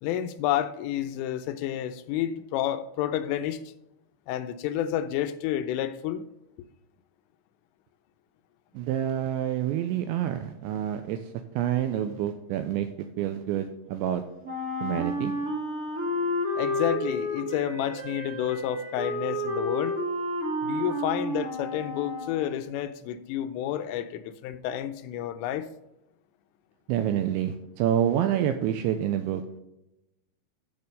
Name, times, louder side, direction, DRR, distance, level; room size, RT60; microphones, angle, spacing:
voice 1, 0.0-3.6 4.3-6.2 16.6-20.0 20.6-25.7, left 11 dB, 85° left, 3.2 m, -30 dB
voice 2, 8.7-11.2 11.6-14.2 14.8-15.3 26.9-29.4, right 10 dB, 85° right, 2.6 m, -27 dB
Wind instrument woodwind instrument, 14.4-22.5, left 1 dB, 40° right, 1.3 m, -31 dB
10.5 x 6.6 x 5.4 m
omnidirectional pair, 5.8 m